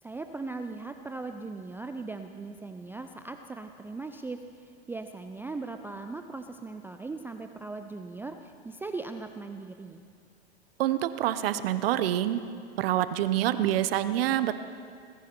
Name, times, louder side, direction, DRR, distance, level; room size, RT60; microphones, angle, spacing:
voice 1, 0.0-10.0, right 3 dB, 5° right, 7 dB, 0.4 m, -39 dB
voice 2, 10.8-12.4 12.8-14.5, right 12 dB, 65° right, 13 dB, 0.8 m, -26 dB
18.5 x 15.0 x 4.5 m, 2.2 s
hypercardioid pair, 105°, 32 cm